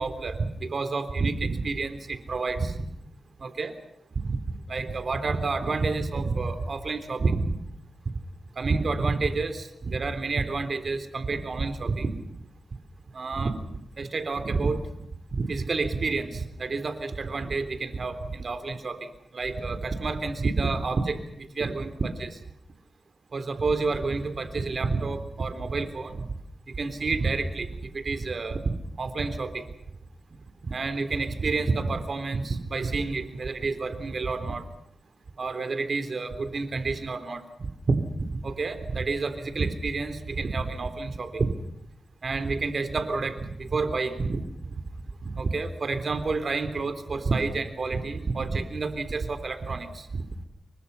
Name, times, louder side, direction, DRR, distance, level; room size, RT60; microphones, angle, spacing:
voice 1, 0.0-2.8 3.4-3.7 4.2-4.4 4.7-7.6 8.6-12.2 13.1-13.5 14.0-14.8 15.3-22.4 23.3-26.2 26.7-29.7 30.6-34.6 35.4-37.4 37.9-41.5 42.2-44.4 45.2-50.2, right 3 dB, 55° right, 10 dB, 3.6 m, -29 dB
30.0 x 24.0 x 5.7 m, 0.77 s
cardioid pair, 75°, 0 cm